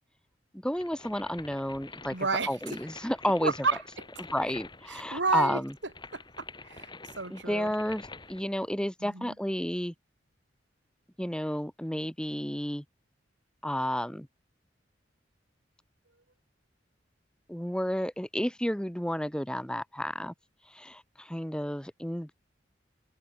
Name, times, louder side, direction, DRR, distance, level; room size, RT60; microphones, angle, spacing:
voice 1, 0.5-2.1 2.5-3.5 4.3-5.7 7.3-9.9 11.2-12.8 13.6-14.3 17.5-20.3 20.7-22.3, equal, 5° left, 1.4 m, -31 dB
sound 1, 0.7-8.4, left 3 dB, 25° left, 4.0 m, -47 dB
voice 2, 2.1-2.5 3.4-3.8 4.9-5.6 6.1-7.7 9.0-9.3, right 4 dB, 75° right, 3.1 m, -31 dB
open air
head